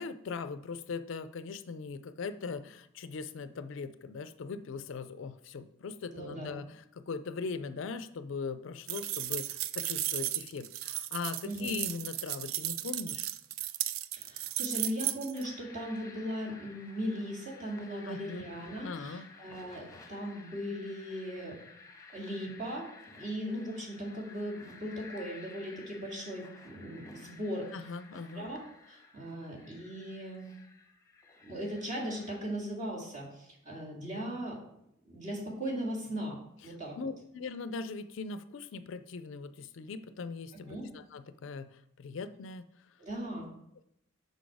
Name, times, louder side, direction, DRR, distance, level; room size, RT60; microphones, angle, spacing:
voice 1, 0.0-13.3 18.0-18.5 18.8-19.3 27.7-28.5 36.7-42.6, left 4 dB, 65° left, 12 dB, 0.4 m, -40 dB
voice 2, 6.1-6.6 11.4-11.7 14.1-21.6 22.1-27.9 28.3-28.6 28.9-30.5 31.4-34.6 35.0-36.4 36.6-37.0 40.7-40.9 43.0-43.5, equal, 35° right, -3 dB, 2.1 m, -38 dB
sound 1, 8.9-15.4, right 13 dB, 80° right, 0.4 m, -35 dB
sound 2, 15.3-32.4, left 4 dB, 15° left, 1.0 m, -54 dB
6.2 x 5.3 x 4.7 m, 0.77 s
head